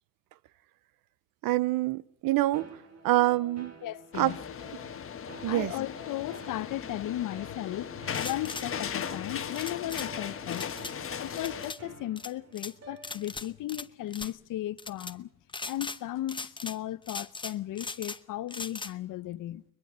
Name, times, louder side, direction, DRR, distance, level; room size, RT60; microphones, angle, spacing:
voice 1, 1.4-2.7 3.0-3.7 4.1-4.3 5.4-5.7, right 17 dB, 80° right, 0.8 m, -26 dB
sound 1, 2.5-13.5, right 3 dB, 50° right, 4.2 m, -51 dB
voice 2, 3.8-4.4 5.4-10.7 11.2-15.3 15.6-19.6, left 14 dB, 65° left, 0.8 m, -36 dB
sound 2, 4.1-11.7, left 8 dB, 40° left, 1.4 m, -38 dB
sound 3, 8.1-8.7 9.6-10.1 10.5-10.9 11.4-11.8 12.2-12.7 13.0-13.9 14.1-14.3 14.8-15.1 15.5-16.0 16.3-16.8 17.1-18.2 18.5-18.9, left 3 dB, 15° left, 0.9 m, -39 dB
22.5 x 22.0 x 6.2 m
cardioid pair, 95°, 34 cm